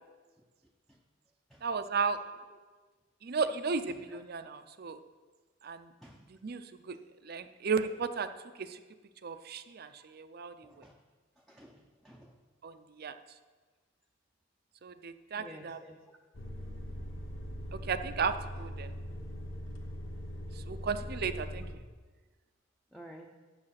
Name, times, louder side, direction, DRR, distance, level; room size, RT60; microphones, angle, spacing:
voice 1, 1.6-2.2 3.2-5.0 5.6-5.9 6.4-7.0 7.2-8.3 8.6-8.8 9.2-10.8 12.6-13.2 14.8-15.8 17.7-18.9 20.7-21.7, right 5 dB, 50° right, 10 dB, 0.5 m, -34 dB
voice 2, 11.5-12.3 15.4-16.0 22.9-23.3, equal, ahead, 0 dB, 0.6 m, -51 dB
sound 1, 16.3-21.7, equal, 70° left, 1.1 m, -41 dB
8.8 x 7.2 x 5.8 m, 1.4 s
head